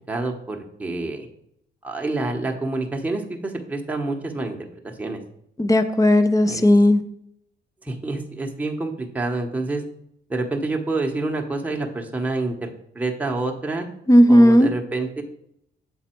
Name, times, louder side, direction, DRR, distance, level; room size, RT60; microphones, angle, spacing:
voice 1, 0.1-1.3 1.8-5.2 6.5-6.7 7.8-9.8 10.3-12.7 12.9-13.9 14.3-15.2, right 2 dB, 5° right, 1 dB, 1.0 m, -27 dB
voice 2, 5.6-7.0 14.1-14.7, equal, 15° left, 8 dB, 0.6 m, -14 dB
7.1 x 4.1 x 4.4 m, 0.72 s
cardioid pair, 90°, 20 cm